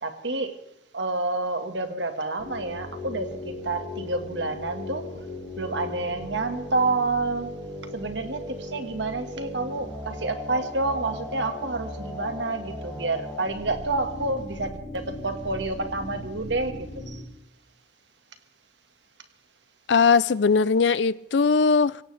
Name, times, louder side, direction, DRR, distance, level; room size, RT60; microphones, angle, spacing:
voice 1, 0.0-0.6 0.9-5.1 5.6-7.5 7.9-17.2, right 3 dB, 85° right, 7 dB, 1.7 m, -29 dB
sound 1, 2.4-17.2, left 1 dB, 15° right, 6.4 m, -37 dB
voice 2, 19.9-22.0, left 5 dB, 85° left, 19 dB, 0.5 m, -20 dB
24.5 x 17.0 x 3.4 m, 0.83 s
head